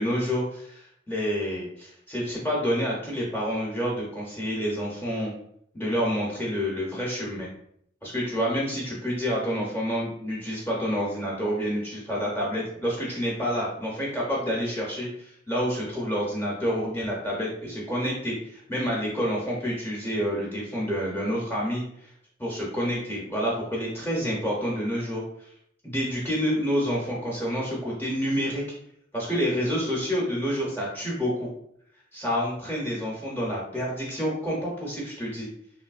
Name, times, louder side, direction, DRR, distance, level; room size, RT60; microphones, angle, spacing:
voice 1, 0.0-5.3 5.7-7.5 8.0-22.1 22.4-25.2 25.8-28.6 29.1-31.5 32.1-35.5, equal, 10° left, -4 dB, 0.6 m, -28 dB
3.0 x 2.6 x 2.3 m, 0.71 s
head